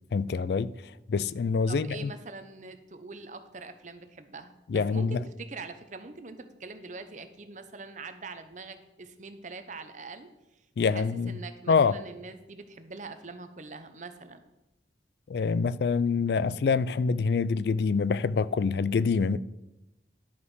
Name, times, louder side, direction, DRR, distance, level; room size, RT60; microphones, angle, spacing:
voice 1, 0.1-0.7 1.1-2.1 4.7-5.2 10.8-11.3 11.7-12.0 15.3-19.4, left 5 dB, 65° left, 0.3 m, -26 dB
voice 2, 1.7-10.3 10.9-14.4, right 3 dB, 45° right, 0.9 m, -43 dB
11.5 x 5.6 x 6.3 m
head